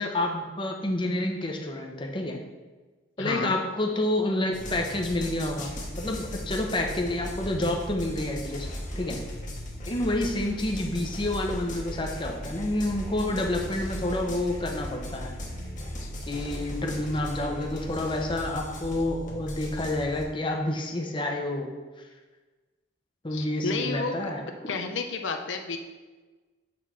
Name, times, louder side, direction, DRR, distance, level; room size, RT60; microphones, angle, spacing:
voice 1, 0.0-2.4 3.2-8.7 9.0-9.2 9.9-15.3 16.3-21.7 23.2-24.4, left 1 dB, 25° left, 1 dB, 0.8 m, -29 dB
voice 2, 3.2-3.6 16.0-16.1 16.4-16.5 23.3-24.3 24.7-25.8, left 4 dB, 80° left, 5 dB, 0.6 m, -31 dB
sound 1, 4.5-20.2, equal, 40° left, 1.2 m, -37 dB
6.1 x 4.2 x 6.1 m, 1.3 s
head